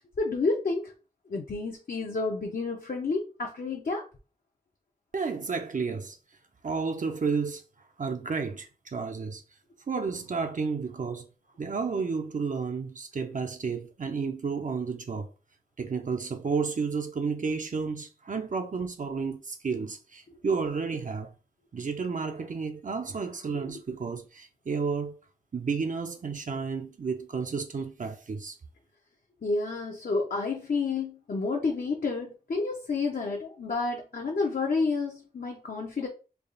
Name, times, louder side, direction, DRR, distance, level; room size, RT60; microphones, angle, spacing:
voice 1, 0.2-0.9 1.3-4.0 23.5-23.6 29.4-36.1, left 3 dB, 65° left, 0.6 m, -30 dB
voice 2, 5.1-6.2 6.6-7.6 8.0-9.4 9.9-11.3 11.6-15.3 15.8-21.3 21.7-25.2 25.5-28.6, right 5 dB, 55° right, 0.5 m, -31 dB
3.4 x 2.4 x 3.8 m
wide cardioid pair, 95°, 16 cm